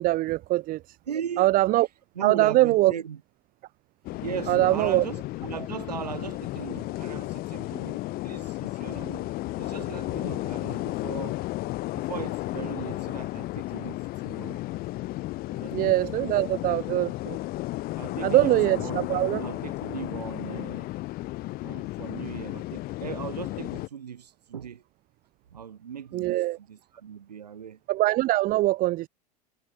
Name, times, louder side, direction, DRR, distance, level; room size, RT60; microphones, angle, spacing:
voice 1, 0.0-1.0 1.4-1.9 2.2-2.9 4.5-5.0 15.7-17.4 18.2-19.4 26.1-26.6 27.9-29.1, right 17 dB, 45° right, 1.0 m, -23 dB
voice 2, 1.1-1.5 1.8-3.2 4.2-11.4 11.9-14.6 15.5-15.8 16.1-16.2 16.9-17.1 18.0-20.9 21.6-24.8 25.5-27.8, right 8 dB, 85° right, 1.8 m, -38 dB
sound 1, 4.0-23.9, left 18 dB, 45° left, 1.2 m, -33 dB
hypercardioid pair, 85°, 20 cm